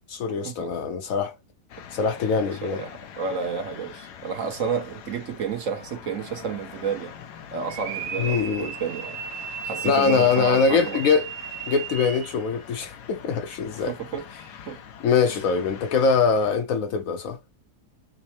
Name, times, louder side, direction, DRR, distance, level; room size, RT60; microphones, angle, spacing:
voice 1, 0.1-1.3 1.9-2.8 8.2-8.7 9.8-11.3 11.7-13.9 15.0-17.4, left 5 dB, 65° left, 1.0 m, -23 dB
sound 1, 1.7-16.6, left 8 dB, 90° left, 1.3 m, -43 dB
voice 2, 2.4-7.1 7.5-9.2 9.6-11.0 13.8-14.3 14.7-14.8, right 6 dB, 60° right, 1.0 m, -31 dB
sound 2, 7.7-12.4, right 9 dB, 80° right, 1.4 m, -35 dB
5.2 x 2.1 x 2.8 m
omnidirectional pair, 1.7 m